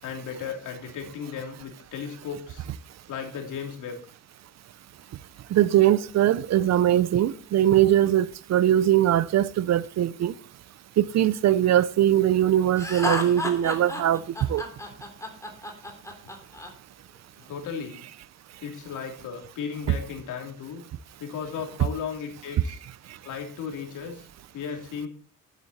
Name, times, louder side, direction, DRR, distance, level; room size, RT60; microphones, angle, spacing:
voice 1, 0.0-2.6 3.1-4.0 17.5-18.0 18.6-20.8 21.2-22.8 23.2-24.3 24.5-25.1, left 7 dB, 80° left, 3.0 m, -35 dB
voice 2, 5.5-10.3 11.0-14.2 14.5-14.6, right 12 dB, 60° right, 0.7 m, -21 dB
Laughter, 12.8-16.7, left 1 dB, 10° left, 3.4 m, -31 dB
11.0 x 9.3 x 4.2 m
cardioid pair, 90°, 30 cm